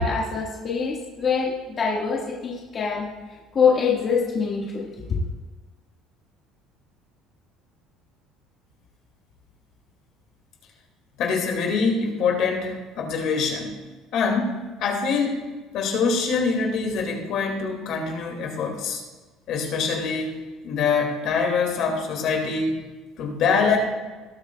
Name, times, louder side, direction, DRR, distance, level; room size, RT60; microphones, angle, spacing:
voice 1, 0.0-3.1 3.5-5.2, left 5 dB, 35° left, -4 dB, 1.7 m, -24 dB
voice 2, 11.2-13.7 14.1-15.4 15.7-19.0 19.5-20.4 20.6-22.8 23.2-23.8, left 5 dB, 55° left, 2 dB, 2.2 m, -24 dB
19.5 x 8.5 x 2.3 m, 1.3 s
cardioid pair, 145°, 0 cm